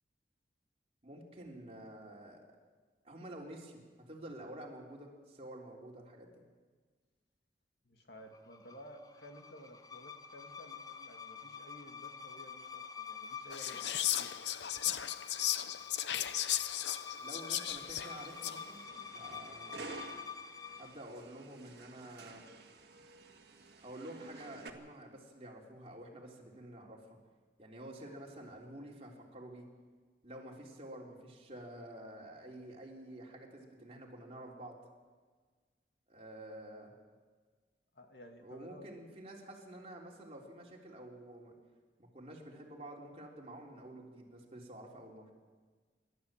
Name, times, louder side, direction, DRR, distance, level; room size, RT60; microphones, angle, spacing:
voice 1, 1.0-2.4 3.0-6.3 17.1-18.8 19.1-19.9 20.8-22.4 23.8-27.2 27.6-29.7 30.2-34.8 36.1-36.9 38.4-41.5 42.0-45.3, right 1 dB, 35° right, -1 dB, 3.4 m, -49 dB
voice 2, 7.8-13.9 14.2-14.4 37.9-38.9, equal, 65° left, 4 dB, 2.3 m, -54 dB
sound 1, 8.3-21.0, left 6 dB, 20° left, 0.7 m, -48 dB
Whispering, 13.5-18.7, left 11 dB, 80° left, 0.7 m, -36 dB
sound 2, 17.8-24.7, right 3 dB, 65° right, 1.9 m, -52 dB
28.0 x 12.5 x 7.5 m, 1.5 s
head